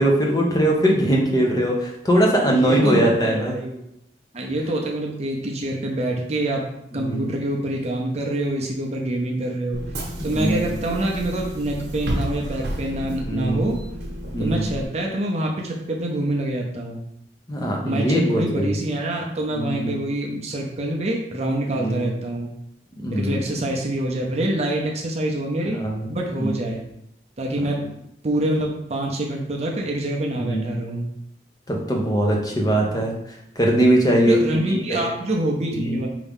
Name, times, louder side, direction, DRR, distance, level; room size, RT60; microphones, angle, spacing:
voice 1, 0.0-3.6 6.9-7.3 10.3-10.7 13.0-13.7 14.3-14.6 17.5-18.7 19.5-20.0 21.7-22.0 23.0-23.4 25.7-26.1 26.4-26.5 30.3-30.7 31.7-33.1 33.6-34.4 34.7-35.1 35.7-36.0, right 1 dB, 20° left, -1 dB, 0.7 m, -21 dB
voice 2, 2.4-3.9 4.3-6.6 6.9-9.8 10.2-13.8 14.4-17.0 17.8-22.5 23.1-25.8 26.1-26.8 27.4-27.8 28.2-31.1 34.3-36.1, right 1 dB, 40° right, 0 dB, 0.6 m, -26 dB
Bus / Engine, 9.7-14.9, equal, 75° right, 0.9 m, -31 dB
4.7 x 2.7 x 3.6 m, 0.78 s
head